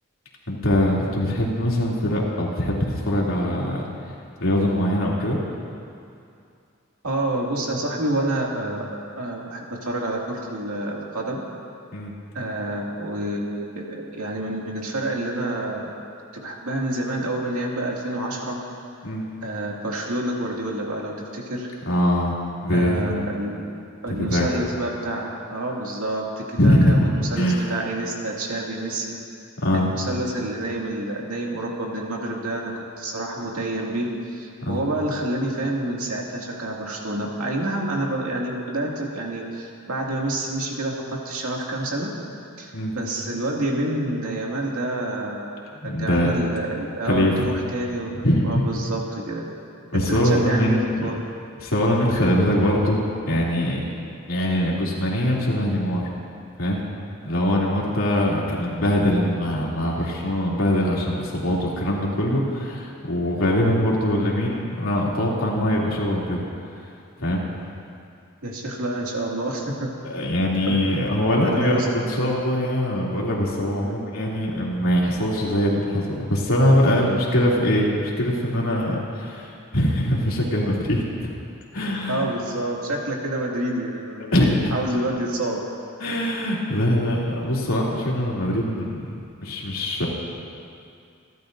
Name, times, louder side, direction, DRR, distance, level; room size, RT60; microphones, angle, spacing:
voice 1, 0.5-3.8 4.4-5.4 11.9-12.1 19.0-19.2 21.8-23.1 24.1-24.5 26.6-27.0 27.4-27.7 29.6-29.9 34.6-34.8 42.7-42.9 45.8-46.4 47.0-47.5 48.2-48.7 49.9-51.1 51.6-53.8 54.3-56.0 56.6-56.8 57.2-66.4 67.2-67.4 70.0-81.3 81.7-82.2 84.3-84.7 86.0-89.1 89.4-90.1, left 1 dB, 75° left, -4 dB, 2.8 m, -22 dB
voice 2, 7.0-11.4 12.3-15.9 16.3-18.6 19.4-21.7 22.7-23.7 24.0-29.1 29.7-32.7 33.0-42.1 42.6-45.6 45.8-48.1 48.4-49.4 50.1-51.2 68.4-69.9 70.7-70.8 71.4-71.9 73.8-74.0 82.1-84.3 84.7-85.6, right 1 dB, 85° right, -2 dB, 2.3 m, -28 dB
27.5 x 12.5 x 2.6 m, 2.5 s
head